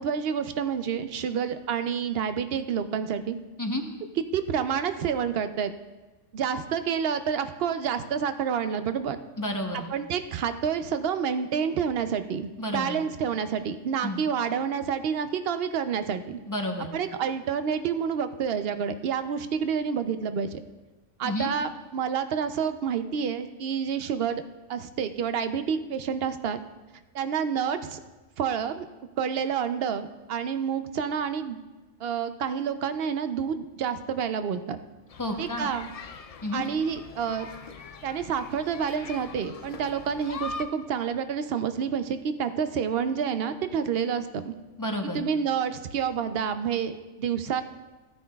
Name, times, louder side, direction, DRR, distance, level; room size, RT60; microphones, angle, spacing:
voice 1, 0.0-3.4 4.3-5.7 6.3-9.2 9.7-16.4 16.9-20.6 21.2-24.4 24.7-26.6 27.1-28.0 28.4-28.9 29.2-31.6 32.0-34.8 35.4-35.9 36.5-37.5 38.0-44.5 45.1-47.6, right 7 dB, 65° right, 10 dB, 0.7 m, -28 dB
voice 2, 9.4-9.8 12.6-13.0 14.0-14.2 16.5-16.9 21.2-21.5 35.2-35.7 36.4-36.6 44.8-45.2, left 1 dB, 20° left, 3 dB, 0.7 m, -30 dB
sound 1, 35.1-40.6, left 4 dB, 60° left, 0.3 m, -42 dB
15.5 x 9.2 x 2.3 m, 1.1 s
omnidirectional pair, 1.3 m